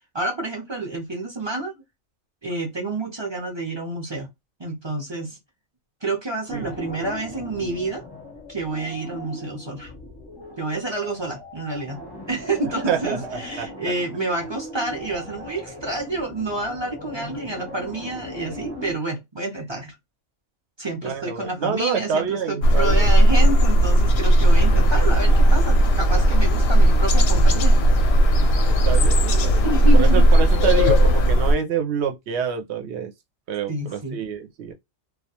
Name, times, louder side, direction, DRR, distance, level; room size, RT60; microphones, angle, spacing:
voice 1, 0.1-1.7 2.4-4.3 4.6-5.4 6.0-8.0 8.5-9.9 10.6-12.0 12.3-20.0 20.8-27.8 29.6-30.3 33.7-34.2, right 2 dB, 35° right, 0.4 m, -29 dB
sound 1, 6.5-18.9, left 1 dB, 30° left, 0.4 m, -38 dB
voice 2, 12.8-13.7 21.0-23.1 28.7-33.1 33.5-34.7, right 7 dB, 65° right, 0.8 m, -27 dB
sound 2, 22.6-31.6, right 1 dB, 65° left, 0.7 m, -16 dB
sound 3, 24.5-31.3, left 11 dB, 85° left, 1.0 m, -32 dB
2.3 x 2.2 x 2.8 m
omnidirectional pair, 1.4 m